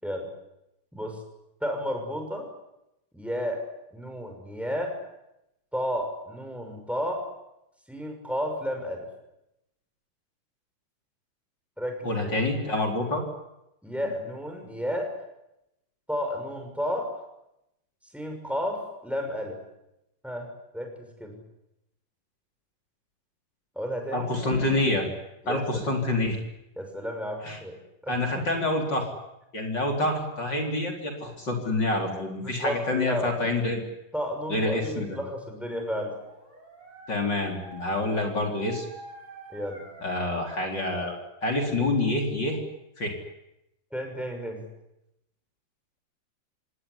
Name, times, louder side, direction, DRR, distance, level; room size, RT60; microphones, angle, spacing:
voice 1, 1.6-2.5 3.1-3.6 3.9-5.0 5.7-7.2 7.9-9.1 11.8-12.5 13.8-15.1 16.1-17.1 18.1-19.6 20.2-21.4 23.7-24.3 25.4-25.6 26.8-27.8 28.0-28.5 32.4-33.3 34.1-36.2 39.5-39.8 43.9-44.6, equal, ahead, 3 dB, 6.2 m, -32 dB
voice 2, 12.0-13.2 24.1-25.1 25.5-26.4 27.4-27.6 28.1-29.1 29.5-33.9 34.5-35.2 37.1-38.9 40.0-41.1 41.4-42.6 43.0-43.1, left 2 dB, 35° left, 2 dB, 4.4 m, -27 dB
Dog, 35.8-40.9, right 3 dB, 55° right, 8.8 m, -48 dB
26.5 x 19.0 x 10.0 m, 0.88 s
omnidirectional pair, 3.6 m